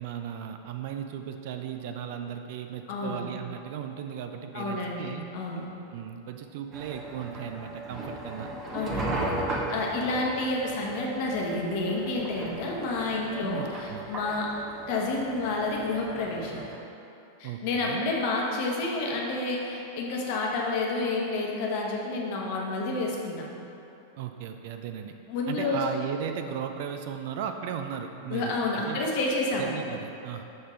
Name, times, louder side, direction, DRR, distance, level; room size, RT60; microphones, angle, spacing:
voice 1, 0.0-5.2 5.9-8.5 13.4-14.1 17.4-18.1 24.2-25.1 25.5-29.1 29.6-30.4, right 8 dB, 50° right, 6 dB, 0.4 m, -36 dB
voice 2, 2.9-3.2 4.5-5.1 5.3-5.7 8.7-14.5 14.9-16.6 17.4-23.4 25.3-25.8 28.3-29.7, left 2 dB, 50° left, -2 dB, 1.0 m, -29 dB
sound 1, 6.7-16.8, right 2 dB, 25° right, 0.8 m, -36 dB
6.5 x 3.5 x 5.5 m, 2.8 s
figure-of-eight pair, 90°, 0 cm